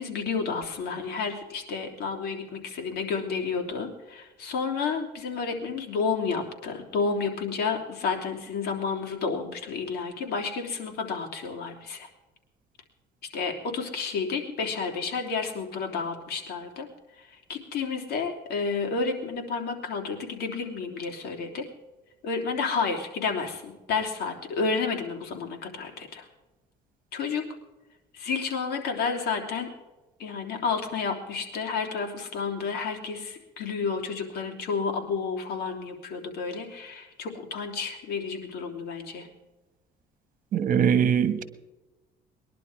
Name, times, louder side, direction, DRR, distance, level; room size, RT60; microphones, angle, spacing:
voice 1, 0.0-12.1 13.3-16.9 17.2-21.7 22.2-26.2 27.1-27.5 28.1-29.7 30.2-39.3, left 5 dB, 70° left, 2 dB, 3.3 m, -31 dB
voice 2, 40.5-41.4, right 8 dB, 55° right, 12 dB, 1.5 m, -22 dB
21.0 x 11.0 x 5.0 m, 1.1 s
cardioid pair, 110°, 17 cm